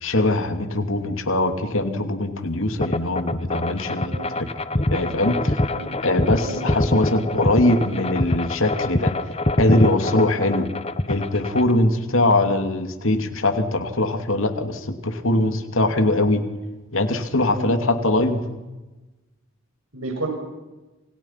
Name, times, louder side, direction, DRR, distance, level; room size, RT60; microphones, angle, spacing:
voice 1, 0.0-4.5 4.9-5.6 6.0-9.1 9.6-10.7 11.1-16.4 16.9-18.4, left 1 dB, 65° left, 7 dB, 2.8 m, -22 dB
sound 1, 2.8-11.7, left 1 dB, 30° left, 1.1 m, -24 dB
voice 2, 19.9-20.3, right 2 dB, 75° right, 2 dB, 7.0 m, -31 dB
29.0 x 26.5 x 5.9 m, 1.1 s
head